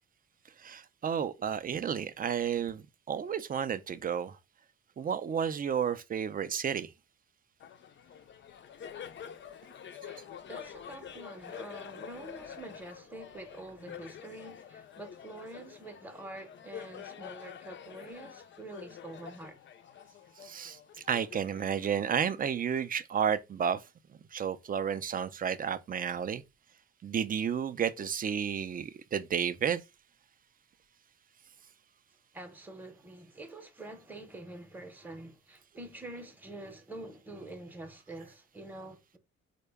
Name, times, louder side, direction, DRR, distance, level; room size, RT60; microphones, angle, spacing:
voice 1, 0.6-4.3 5.0-6.9 20.5-20.8 21.1-23.8 24.3-26.4 27.0-29.8, right 8 dB, 30° right, 0.4 m, -31 dB
Laughter, 7.6-22.6, left 8 dB, 40° left, 0.4 m, -47 dB
voice 2, 10.0-19.6 32.3-39.2, right 2 dB, 5° right, 0.7 m, -46 dB
3.7 x 2.2 x 3.4 m
cardioid pair, 90°, 30 cm